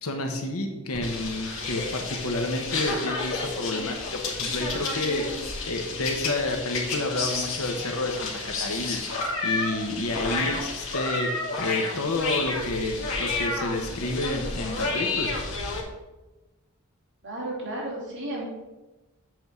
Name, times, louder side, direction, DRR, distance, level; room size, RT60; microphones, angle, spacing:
voice 1, 0.0-5.3 5.6-9.0 9.4-11.3 11.6-15.3, left 2 dB, 80° left, 3 dB, 1.2 m, -30 dB
sound 1, 0.9-15.8, left 3 dB, 60° left, 2.0 m, -31 dB
voice 2, 17.2-18.4, right 1 dB, 55° right, -5 dB, 3.3 m, -33 dB
7.9 x 4.7 x 6.9 m, 1.1 s
head